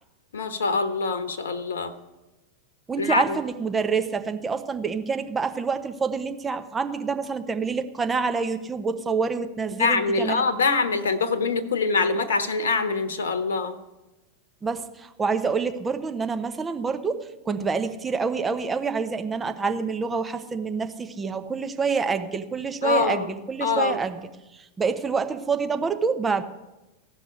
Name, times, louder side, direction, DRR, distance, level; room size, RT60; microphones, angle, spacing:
voice 1, 0.3-1.9 3.0-3.4 9.8-13.7 22.8-23.3 23.6-24.0, left 4 dB, 65° left, 12 dB, 1.2 m, -24 dB
voice 2, 2.9-10.4 14.6-24.2 24.5-26.4, right 5 dB, 15° right, 7 dB, 1.0 m, -27 dB
16.0 x 6.1 x 9.9 m, 1.0 s
figure-of-eight pair, 90°, 0 cm